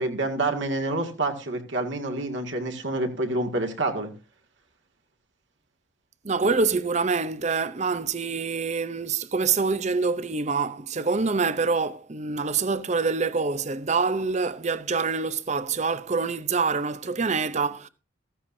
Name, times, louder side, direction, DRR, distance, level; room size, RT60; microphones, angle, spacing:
voice 1, 0.0-4.1, right 2 dB, 65° right, 2.0 m, -28 dB
voice 2, 6.2-17.9, right 4 dB, 35° right, 0.6 m, -26 dB
14.5 x 14.5 x 2.7 m
head